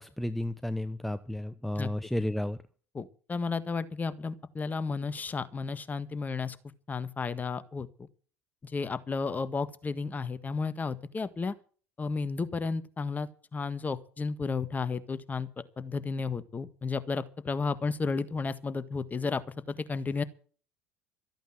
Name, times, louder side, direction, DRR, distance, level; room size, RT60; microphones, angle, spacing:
voice 1, 0.0-2.6, left 1 dB, ahead, 12 dB, 0.8 m, -32 dB
voice 2, 2.9-6.6 6.9-8.1 8.6-11.5 12.0-15.5 15.8-19.4 19.7-20.2, left 4 dB, 25° left, 13 dB, 1.6 m, -33 dB
14.0 x 9.0 x 7.8 m, 0.41 s
hypercardioid pair, 65°, 6 cm